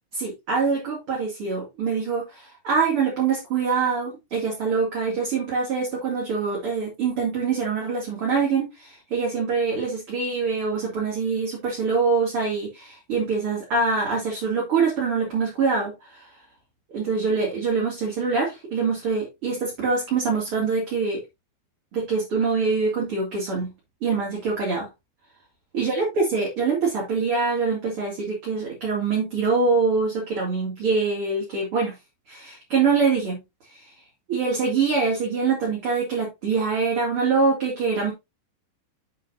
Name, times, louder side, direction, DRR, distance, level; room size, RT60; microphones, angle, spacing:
voice 1, 0.1-16.3 16.9-21.2 21.9-23.7 24.0-24.9 25.7-32.0 32.3-33.4 33.7-33.8 34.3-38.1, right 4 dB, 35° right, 2.7 m, -24 dB
8.4 x 7.5 x 2.6 m
omnidirectional pair, 5.0 m